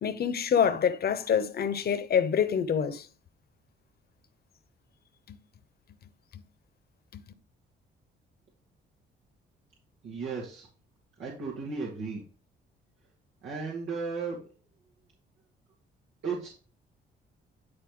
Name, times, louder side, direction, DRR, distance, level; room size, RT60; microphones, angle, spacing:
voice 1, 0.0-3.1 5.3-5.4 7.1-7.2, left 7 dB, 50° left, 1.0 m, -26 dB
voice 2, 10.0-10.7 11.2-12.2 13.4-14.4 16.2-16.5, right 4 dB, 80° right, 2.4 m, -34 dB
10.5 x 4.1 x 3.9 m
cardioid pair, 90°, 20 cm